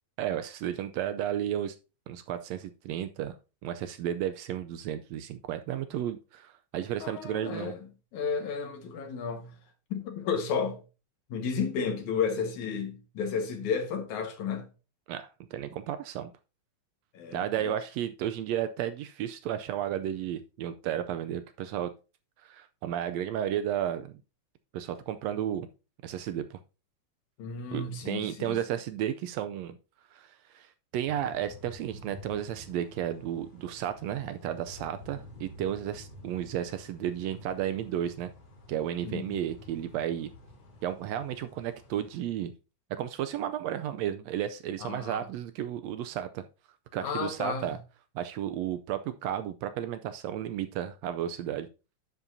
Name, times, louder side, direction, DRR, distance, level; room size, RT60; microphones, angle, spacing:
voice 1, 0.2-1.8 2.1-3.3 3.6-7.7 15.1-16.3 17.3-21.9 22.4-24.2 24.7-25.7 26.0-26.6 27.7-29.8 30.1-38.3 38.7-40.3 40.8-42.5 42.9-46.4 46.9-47.8 48.2-51.7, right 10 dB, 75° right, 1.7 m, -33 dB
voice 2, 7.0-7.8 8.1-9.5 9.9-10.8 11.3-14.7 17.1-17.7 27.4-28.6 39.0-39.4 44.8-45.2 47.0-47.7, left 6 dB, 80° left, 2.8 m, -32 dB
sound 1, 31.1-42.2, left 1 dB, 60° left, 3.6 m, -50 dB
10.5 x 7.2 x 2.7 m
omnidirectional pair, 3.4 m